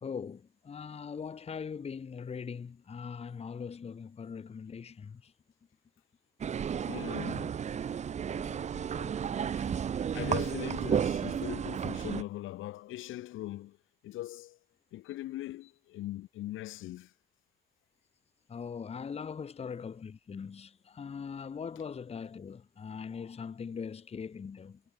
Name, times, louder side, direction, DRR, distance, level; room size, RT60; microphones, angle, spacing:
voice 1, 0.0-5.3 18.5-24.8, left 6 dB, 30° left, 0.8 m, -41 dB
sound 1, 6.4-12.2, right 8 dB, 35° right, 0.5 m, -33 dB
voice 2, 6.9-7.6 8.3-9.8 10.1-13.8 14.0-14.6 14.9-17.1, left 15 dB, 85° left, 1.1 m, -41 dB
cardioid pair, 90°, 20 cm